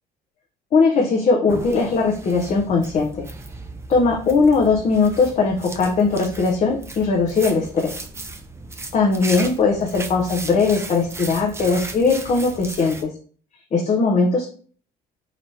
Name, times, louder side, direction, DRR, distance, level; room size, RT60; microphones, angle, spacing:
voice 1, 0.7-3.3 3.9-8.0 8.9-13.1 13.7-14.5, left 4 dB, 45° left, -1 dB, 0.7 m, -19 dB
sound 1, 1.5-13.0, right 3 dB, 15° right, 0.4 m, -36 dB
4.0 x 3.1 x 2.8 m, 0.43 s
cardioid pair, 110°, 17 cm